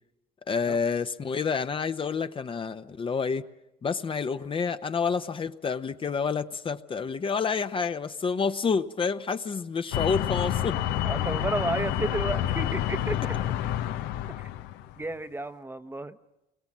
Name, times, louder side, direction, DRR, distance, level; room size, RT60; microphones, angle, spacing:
voice 1, 0.5-3.4 3.8-10.8, left 5 dB, 30° left, 10 dB, 0.8 m, -28 dB
sound 1, 9.9-15.0, left 12 dB, 90° left, 1.0 m, -29 dB
voice 2, 11.0-13.5 14.4-14.5 15.0-16.2, right 2 dB, 15° right, 12 dB, 0.9 m, -32 dB
29.0 x 22.0 x 7.4 m, 0.94 s
cardioid pair, 110°, 17 cm